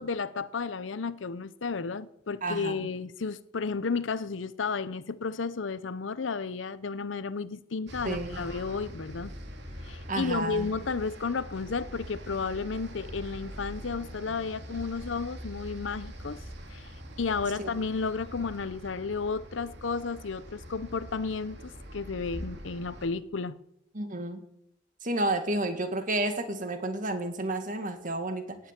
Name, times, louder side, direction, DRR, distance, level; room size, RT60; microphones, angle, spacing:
voice 1, 0.0-9.3 9.8-16.4 16.7-16.9 17.2-23.6, left 4 dB, 80° left, 0.7 m, -33 dB
voice 2, 2.4-2.8 8.0-8.4 10.1-10.7 17.6-17.7 23.9-24.4 25.0-28.6, right 2 dB, 45° right, 1.9 m, -31 dB
sound 1, 7.9-23.1, equal, 65° right, 2.7 m, -43 dB
17.5 x 6.9 x 9.1 m
head